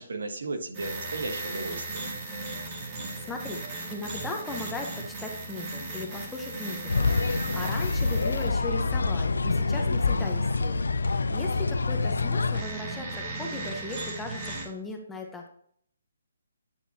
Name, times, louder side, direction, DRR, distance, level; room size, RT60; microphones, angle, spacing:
voice 1, 0.0-2.0, right 3 dB, 75° right, 4 dB, 1.3 m, -35 dB
sound 1, 0.7-14.7, equal, 30° right, 2.1 m, -35 dB
voice 2, 2.8-15.5, left 2 dB, 5° left, 2 dB, 0.9 m, -38 dB
sound 2, 6.9-12.6, left 4 dB, 85° left, 0.5 m, -27 dB
9.5 x 3.9 x 2.8 m, 0.64 s
hypercardioid pair, 155°, 0 cm